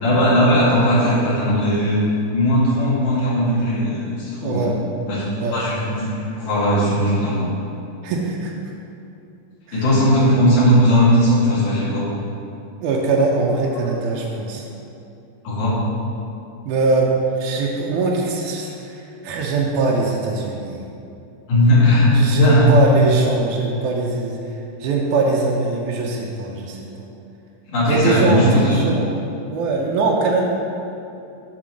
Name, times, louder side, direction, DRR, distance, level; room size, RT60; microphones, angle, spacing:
voice 1, 0.0-2.0 2.3-4.7 5.1-5.2 5.5-7.4 9.7-12.1 15.4-15.8 21.5-22.7 27.7-28.8, equal, 55° left, -8 dB, 3.1 m, -17 dB
voice 2, 4.4-4.8 5.4-5.6 8.0-8.5 9.7-9.8 12.8-14.7 16.7-17.1 17.4-20.8 22.1-24.4 24.8-27.1 27.9-29.1 29.5-30.5, right 3 dB, 80° right, -2 dB, 1.8 m, -21 dB
8.6 x 3.8 x 6.2 m, 2.7 s
omnidirectional pair, 4.2 m